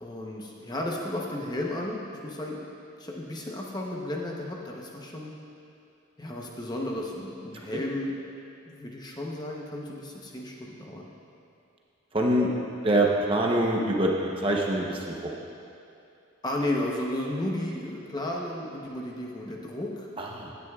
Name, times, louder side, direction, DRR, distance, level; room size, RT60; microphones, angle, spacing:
voice 1, 0.0-2.6 3.0-5.3 6.2-8.2 8.7-11.1 16.4-20.1, left 1 dB, 20° left, -2 dB, 0.8 m, -33 dB
voice 2, 12.1-12.5 12.8-15.3 20.2-20.6, right 1 dB, 25° right, -1 dB, 0.8 m, -25 dB
16.0 x 9.6 x 2.4 m, 2.6 s
head